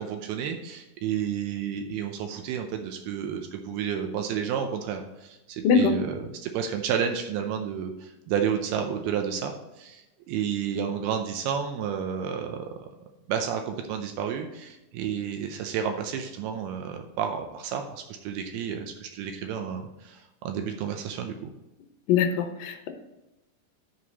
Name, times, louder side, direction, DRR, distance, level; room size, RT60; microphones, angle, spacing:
voice 1, 0.0-12.7 13.3-21.5, right 8 dB, 80° right, 5 dB, 2.6 m, -31 dB
voice 2, 22.1-22.9, left 7 dB, 75° left, 6 dB, 2.4 m, -22 dB
11.0 x 4.8 x 4.1 m, 0.98 s
omnidirectional pair, 4.6 m